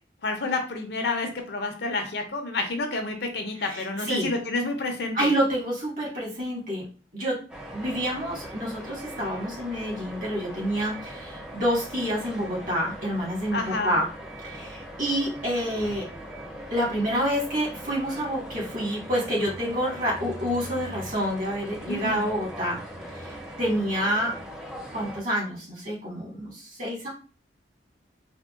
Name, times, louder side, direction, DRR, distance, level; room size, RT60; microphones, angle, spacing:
voice 1, 0.2-5.3 13.5-13.9 21.9-22.3, left 3 dB, 65° left, 4 dB, 0.6 m, -29 dB
voice 2, 3.6-4.3 5.1-6.9 7.1-7.4 7.7-14.1 14.4-16.1 16.7-22.8 23.1-24.3 24.9-27.1, equal, 50° right, -3 dB, 1.4 m, -28 dB
sound 1, 7.5-25.2, equal, 5° right, 0.4 m, -40 dB
3.5 x 2.2 x 2.4 m, 0.37 s
head